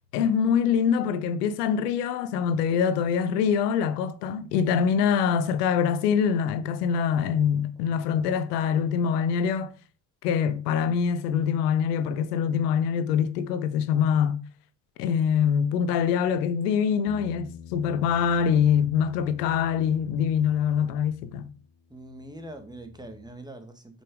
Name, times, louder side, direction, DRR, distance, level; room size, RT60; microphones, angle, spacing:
voice 1, 0.1-9.7 10.2-14.4 15.0-21.5, left 7 dB, 90° left, 0.8 m, -24 dB
voice 2, 7.8-8.7 21.9-24.0, right 1 dB, 10° right, 2.0 m, -44 dB
Bass guitar, 17.1-23.3, left 7 dB, 50° left, 1.2 m, -48 dB
6.4 x 5.4 x 4.8 m
hypercardioid pair, 50°, 46 cm